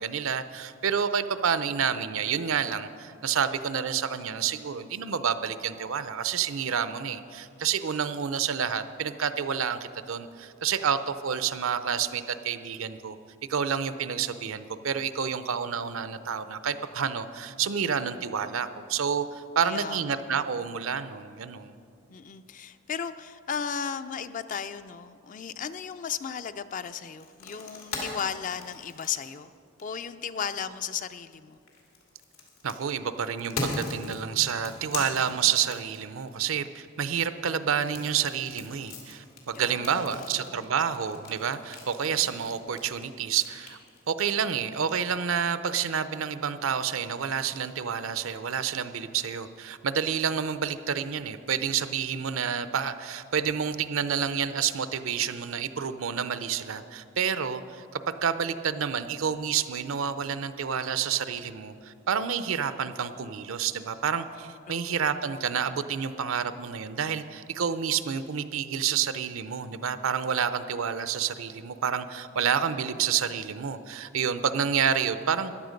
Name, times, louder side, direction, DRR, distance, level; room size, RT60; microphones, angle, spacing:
voice 1, 0.0-9.8 10.1-13.2 13.5-21.8 32.6-43.8 44.1-75.5, right 7 dB, 75° right, 12 dB, 0.6 m, -29 dB
voice 2, 19.6-20.2 22.1-29.5 29.8-31.6 39.5-40.6 64.7-65.0, left 7 dB, 40° left, 12 dB, 0.4 m, -35 dB
sound 1, 27.2-30.1 31.5-36.3 37.7-44.2, left 3 dB, 90° left, 2.7 m, -39 dB
14.5 x 10.5 x 5.2 m, 2.5 s
head